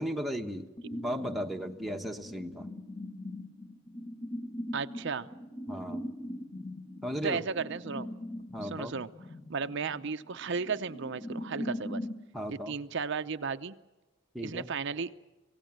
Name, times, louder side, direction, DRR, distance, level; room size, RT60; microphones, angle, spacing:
voice 1, 0.0-2.7 5.7-6.1 7.0-7.4 8.5-8.9 12.3-12.8 14.3-14.7, equal, ahead, 2 dB, 1.2 m, -36 dB
sound 1, 0.8-12.2, left 1 dB, 35° left, 1.7 m, -41 dB
voice 2, 4.7-5.3 7.2-8.1 8.6-9.1 9.5-12.0 12.5-13.8 14.4-15.1, right 5 dB, 60° right, 10 dB, 0.6 m, -34 dB
26.5 x 17.0 x 7.6 m, 1.1 s
head